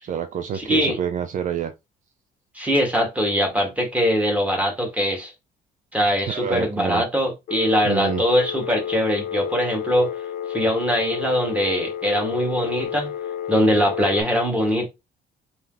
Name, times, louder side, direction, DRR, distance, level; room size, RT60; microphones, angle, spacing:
voice 1, 0.0-1.7 6.3-7.0 7.8-8.2, right 8 dB, 45° right, 0.5 m, -27 dB
voice 2, 0.5-1.0 2.5-5.3 5.9-10.1 10.5-13.1 13.5-14.9, equal, 10° right, 1.7 m, -22 dB
Telephone, 7.5-14.2, left 9 dB, 50° left, 0.6 m, -31 dB
3.3 x 2.9 x 3.8 m
cardioid pair, 110°, 17 cm